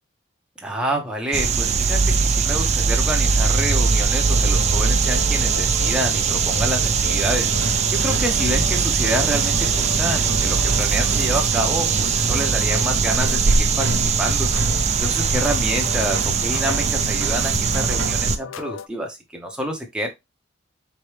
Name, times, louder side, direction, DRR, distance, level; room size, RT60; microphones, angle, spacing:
voice 1, 0.6-20.1, equal, 5° right, 1 dB, 0.7 m, -28 dB
sound 1, 1.3-18.4, right 5 dB, 30° right, 0.4 m, -20 dB
sound 2, 3.5-18.9, left 7 dB, 75° left, 0.3 m, -37 dB
sound 3, 7.2-18.5, right 2 dB, 75° right, 0.9 m, -33 dB
4.3 x 3.1 x 3.2 m, 0.21 s
head